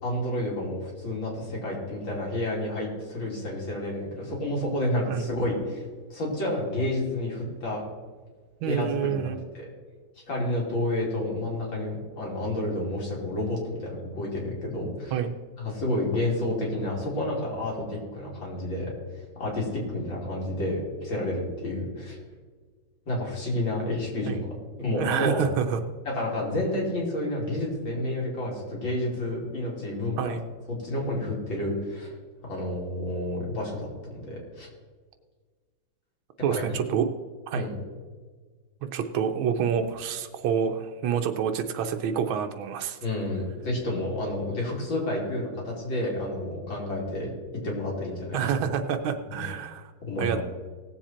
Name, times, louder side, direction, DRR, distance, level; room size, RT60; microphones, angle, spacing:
voice 1, 0.0-5.8 6.1-7.8 8.7-9.7 10.3-15.1 15.6-18.9 19.4-22.2 23.1-25.5 26.1-30.2 30.7-32.1 32.4-33.9 34.2-34.7 36.5-36.6 37.5-37.8 43.0-47.3 47.6-48.8 49.2-49.4 50.0-50.4, left 1 dB, 75° left, -3 dB, 3.8 m, -30 dB
voice 2, 8.6-9.4 15.1-15.3 24.2-24.4 25.0-25.8 30.2-30.4 36.4-37.1 37.5-37.7 38.9-43.0 48.3-49.9 50.2-50.4, right 8 dB, 90° right, 6 dB, 1.6 m, -27 dB
18.0 x 7.3 x 4.4 m, 1.5 s
omnidirectional pair, 2.1 m